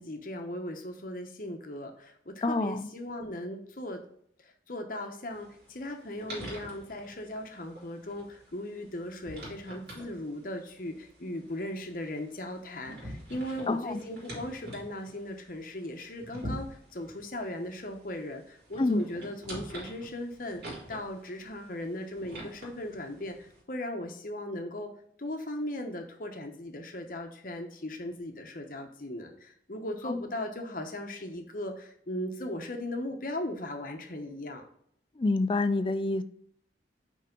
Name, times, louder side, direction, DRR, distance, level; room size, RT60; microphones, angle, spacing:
voice 1, 0.0-4.0 4.4-24.9 25.2-34.6, left 1 dB, 50° left, 4 dB, 1.0 m, -38 dB
voice 2, 2.4-2.9 13.7-14.0 18.8-19.0 30.1-30.2 35.2-36.2, left 2 dB, 30° left, 12 dB, 0.4 m, -27 dB
sound 1, 5.3-23.6, right 1 dB, 70° right, 3.0 m, -46 dB
5.7 x 4.8 x 5.2 m, 0.66 s
head